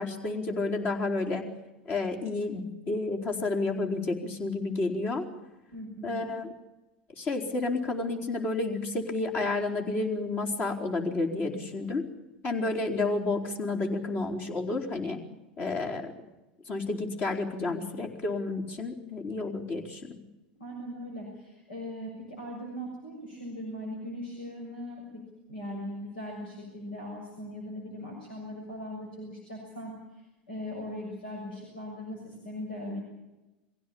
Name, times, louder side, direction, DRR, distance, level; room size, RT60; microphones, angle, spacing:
voice 1, 0.0-1.4 1.9-5.3 6.0-6.5 7.2-12.1 12.4-15.2 15.6-16.1 16.7-20.2, left 3 dB, 45° left, 1 dB, 4.4 m, -30 dB
voice 2, 5.7-6.3 20.6-29.9 30.5-33.0, equal, 90° left, 0 dB, 6.4 m, -39 dB
23.5 x 16.5 x 8.7 m, 1.1 s
hypercardioid pair, 95°, 5 cm